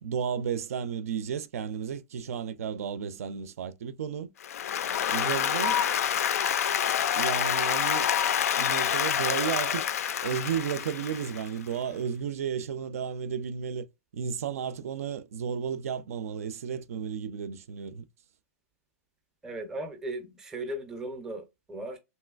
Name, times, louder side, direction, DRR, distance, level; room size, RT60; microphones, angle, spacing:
voice 1, 0.0-4.3 5.1-5.9 7.1-8.1 8.6-9.8 10.2-13.9 14.1-18.0, right 7 dB, 65° right, 0.4 m, -33 dB
Applause, 4.4-11.6, left 9 dB, 70° left, 0.4 m, -27 dB
voice 2, 19.4-22.0, right 1 dB, 5° right, 0.5 m, -37 dB
3.1 x 2.8 x 2.3 m
hypercardioid pair, 165°, 8 cm